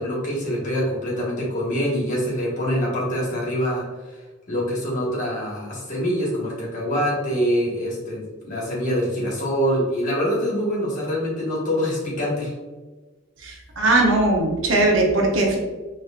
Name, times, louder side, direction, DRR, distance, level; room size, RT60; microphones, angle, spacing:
voice 1, 0.0-3.8 4.5-12.5, equal, 40° left, -4 dB, 1.4 m, -25 dB
voice 2, 13.4-15.6, right 2 dB, 70° right, 0 dB, 0.8 m, -19 dB
4.2 x 3.1 x 2.4 m, 1.2 s
head